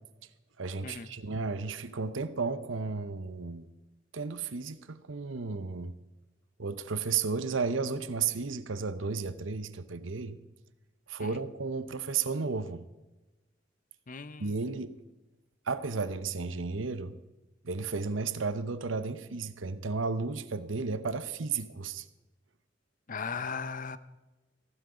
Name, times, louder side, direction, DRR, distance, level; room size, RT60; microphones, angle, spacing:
voice 1, 0.6-3.7 4.1-5.9 6.6-10.4 11.1-12.9 14.4-15.0 15.7-17.2 17.6-22.0, right 4 dB, 85° right, 0.9 m, -33 dB
voice 2, 14.1-14.6 23.1-24.0, left 5 dB, 45° left, 0.7 m, -37 dB
15.0 x 11.5 x 5.0 m
head